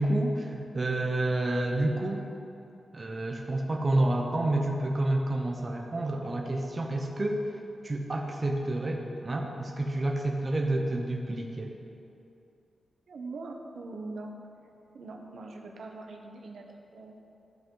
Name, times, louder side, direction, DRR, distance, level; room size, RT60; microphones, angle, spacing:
voice 1, 0.0-2.2 2.9-7.4 7.8-11.8, right 1 dB, 25° right, 1 dB, 0.7 m, -29 dB
voice 2, 13.1-14.4 14.9-17.2, right 3 dB, 70° right, 1 dB, 0.9 m, -42 dB
14.0 x 5.3 x 3.9 m, 2.7 s
wide cardioid pair, 165°, 0 cm